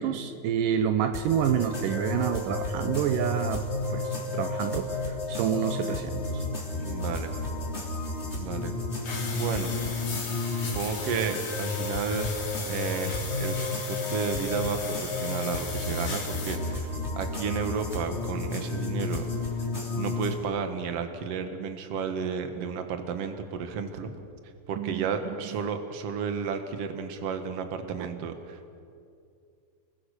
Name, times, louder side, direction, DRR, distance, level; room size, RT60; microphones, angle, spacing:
voice 1, 0.0-3.6 3.9-6.4 24.8-25.4, right 9 dB, 80° right, 8 dB, 2.4 m, -28 dB
sound 1, 1.1-20.3, left 3 dB, 20° left, 3.2 m, -32 dB
voice 2, 6.8-7.3 8.4-8.7 9.3-9.7 10.7-12.4 12.7-13.6 13.9-16.9 17.2-19.3 19.6-19.7 20.0-24.1 24.7-28.8, right 6 dB, 50° right, 6 dB, 2.3 m, -32 dB
sound 2, 9.0-16.6, left 4 dB, 60° left, 4.7 m, -37 dB
30.0 x 20.5 x 6.6 m, 2.4 s
omnidirectional pair, 4.0 m